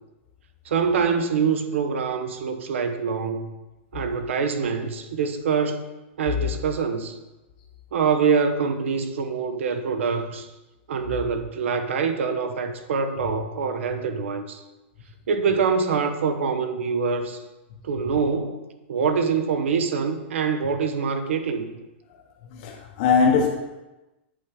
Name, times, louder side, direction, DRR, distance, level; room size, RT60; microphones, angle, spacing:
voice 1, 0.6-3.5 3.9-5.8 6.2-7.2 7.9-10.5 10.9-14.6 15.3-17.4 17.8-21.7, right 5 dB, 85° right, 0.8 m, -25 dB
voice 2, 22.5-23.5, left 5 dB, 35° left, 0.6 m, -20 dB
8.4 x 3.6 x 4.7 m
supercardioid pair, 175°, 7 cm